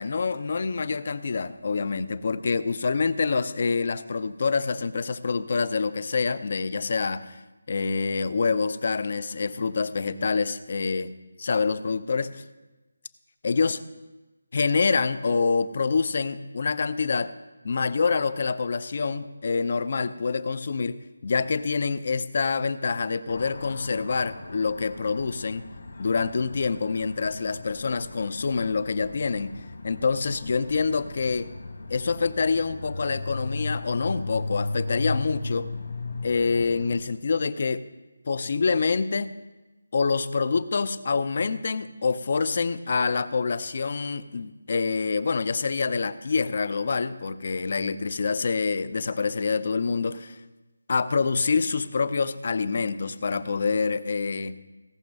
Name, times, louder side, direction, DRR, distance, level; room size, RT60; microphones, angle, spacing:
voice 1, 0.0-7.4 7.7-11.1 11.4-12.4 13.4-13.8 14.5-17.3 17.6-25.6 26.0-29.5 29.8-31.5 31.9-35.7 36.2-37.8 38.2-39.3 39.9-50.4 50.9-54.6, left 4 dB, 45° left, 14 dB, 0.6 m, -26 dB
sound 1, 23.3-37.0, left 2 dB, 65° left, 1.8 m, -36 dB
17.0 x 6.1 x 5.4 m, 1.1 s
figure-of-eight pair, 165°, 0 cm